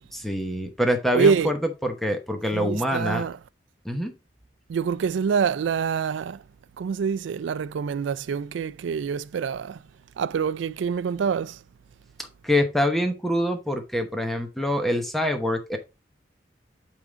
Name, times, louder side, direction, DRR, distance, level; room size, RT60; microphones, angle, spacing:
voice 1, 0.1-3.2 3.8-4.1 12.4-15.8, left 1 dB, ahead, 0.9 m, -25 dB
voice 2, 1.1-1.5 2.5-3.3 4.7-6.4 6.8-9.8 10.2-11.6, right 6 dB, 70° right, 0.3 m, -25 dB
8.4 x 3.7 x 3.9 m
head